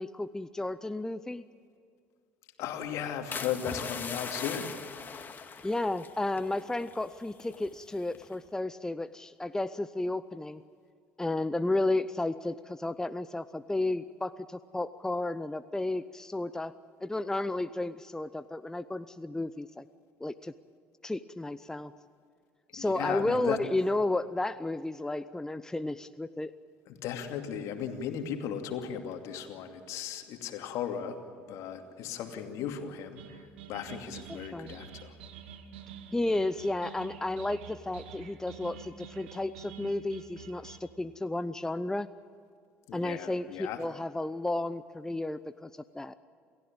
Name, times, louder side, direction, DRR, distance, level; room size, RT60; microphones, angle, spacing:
voice 1, 0.0-1.4 5.6-10.6 11.2-16.7 17.0-19.8 20.2-20.5 21.0-21.9 22.7-26.5 34.3-34.8 36.1-42.1 42.9-45.7 45.9-46.1, left 2 dB, 10° left, 13 dB, 0.7 m, -32 dB
voice 2, 2.6-4.7 22.8-23.6 26.9-31.2 31.5-33.2 33.7-35.1 42.9-43.8, left 8 dB, 60° left, 5 dB, 2.6 m, -36 dB
sound 1, 3.3-7.7 8.1-8.5, left 5 dB, 35° left, 2.2 m, -40 dB
sound 2, 33.1-40.8, right 7 dB, 75° right, 1.6 m, -48 dB
28.5 x 15.5 x 8.9 m, 2.3 s
hypercardioid pair, 60°, 6 cm